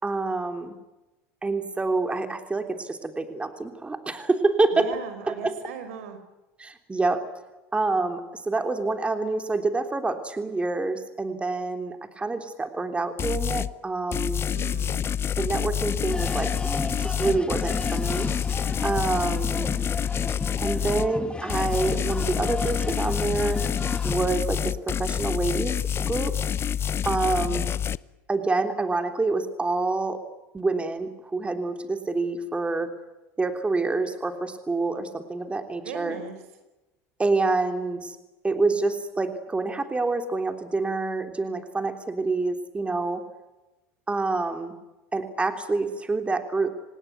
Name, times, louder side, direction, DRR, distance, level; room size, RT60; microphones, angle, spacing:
voice 1, 0.0-0.7 1.4-4.9 5.3-5.6 6.6-7.3 7.7-14.4 15.3-18.3 18.8-19.7 20.6-23.6 24.0-25.7 26.0-26.3 27.0-27.7 28.3-30.2 30.5-32.9 33.4-36.2 37.2-38.1 38.4-43.2 44.1-44.7 45.1-46.7, right 3 dB, 15° right, 7 dB, 3.4 m, -27 dB
voice 2, 4.7-6.2 14.5-15.0 19.0-19.5 27.4-27.8 35.8-36.4, right 7 dB, 85° right, 9 dB, 5.1 m, -39 dB
sound 1, 13.2-13.7 14.1-21.1 21.5-28.0, left 9 dB, 35° left, 0.8 m, -27 dB
sound 2, 16.1-24.1, left 3 dB, 15° left, 1.6 m, -34 dB
27.0 x 19.0 x 9.3 m, 1.1 s
supercardioid pair, 95°, 7 cm